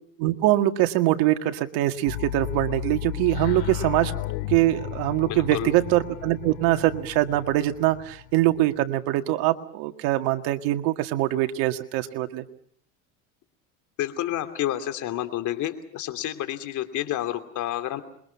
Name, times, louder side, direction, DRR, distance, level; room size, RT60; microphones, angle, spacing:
voice 1, 0.2-4.1 4.5-12.4, right 15 dB, 70° right, 7 dB, 2.0 m, -23 dB
sound 1, 2.1-8.8, left 16 dB, 70° left, 2.7 m, -34 dB
voice 2, 5.2-5.7 14.0-18.0, left 13 dB, 50° left, 8 dB, 2.8 m, -29 dB
27.0 x 23.0 x 5.8 m, 0.66 s
supercardioid pair, 115°, 37 cm